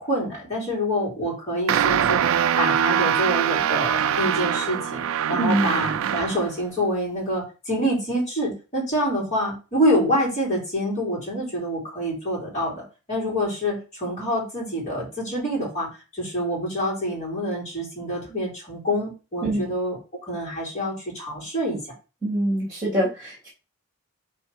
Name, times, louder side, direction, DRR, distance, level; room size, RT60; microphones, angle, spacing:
voice 1, 0.0-2.3 2.6-12.8 13.1-15.9 16.1-21.8, equal, 35° left, -5 dB, 3.7 m, -26 dB
sound 1, 1.7-6.5, right 9 dB, 65° right, 0.3 m, -23 dB
voice 2, 22.2-23.5, right 1 dB, 15° right, -6 dB, 2.9 m, -24 dB
6.1 x 4.4 x 4.5 m, 0.33 s
head